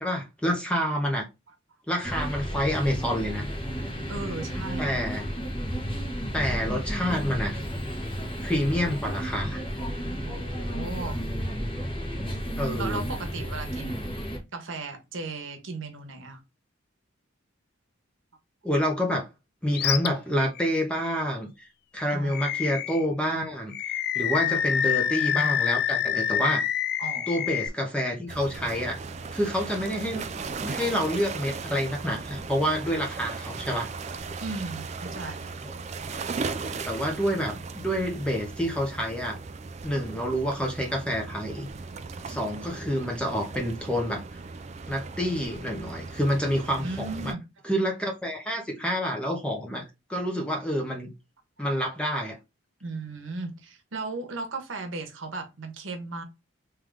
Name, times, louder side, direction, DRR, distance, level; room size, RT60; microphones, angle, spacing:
voice 1, 0.0-1.2 1.9-3.5 4.8-5.3 6.3-7.5 8.4-9.6 12.6-13.0 18.6-19.3 19.6-21.7 21.9-26.6 27.3-29.0 29.3-30.2 30.6-33.9 35.6-35.7 36.4-36.5 36.9-39.4 39.8-41.7 42.3-44.2 44.9-47.3 47.6-49.8 50.1-51.1 51.6-52.4, equal, 5° left, 0.8 m, -28 dB
sound 1, 2.0-14.4, equal, 25° left, 1.2 m, -32 dB
voice 2, 4.1-4.9 10.2-11.2 12.7-14.2 14.5-16.4 22.1-22.4 24.4-25.6 27.0-27.5 34.4-35.5 46.8-47.4 52.8-56.2, right 3 dB, 70° right, 1.0 m, -36 dB
Animal, 19.7-20.1 20.6-20.7 22.3-23.1 23.7-27.7, left 10 dB, 50° left, 0.3 m, -27 dB
sound 2, 28.3-47.3, right 4 dB, 35° right, 0.3 m, -37 dB
3.3 x 3.2 x 3.6 m
head